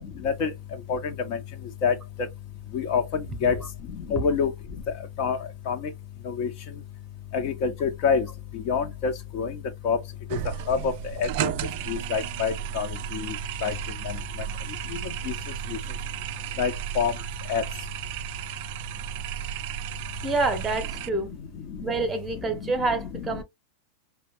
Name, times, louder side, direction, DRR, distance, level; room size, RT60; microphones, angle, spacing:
voice 1, 4.1-4.5 5.2-5.4 5.7-5.8 6.3-6.5 7.3-8.2 8.7-9.5 9.8-10.0 10.7-10.9 11.2-11.5 11.9-12.9 13.6-13.7 16.6-17.1 17.5-17.6, left 6 dB, 45° left, 0.8 m, -25 dB
sound 1, 10.3-21.1, right 12 dB, 50° right, 0.3 m, -34 dB
voice 2, 20.2-21.4 21.8-23.4, right 3 dB, 15° right, 1.0 m, -27 dB
4.9 x 2.3 x 3.0 m
figure-of-eight pair, 90°, 0 cm